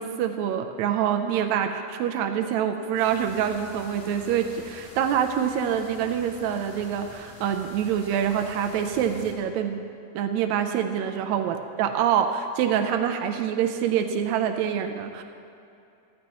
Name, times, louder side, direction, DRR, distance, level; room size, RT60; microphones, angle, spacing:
voice 1, 0.0-9.8 10.1-15.2, right 8 dB, 90° right, 6 dB, 1.6 m, -26 dB
sound 1, 2.9-9.3, left 1 dB, 30° left, 1.0 m, -47 dB
15.0 x 13.0 x 3.0 m, 2.6 s
omnidirectional pair, 3.8 m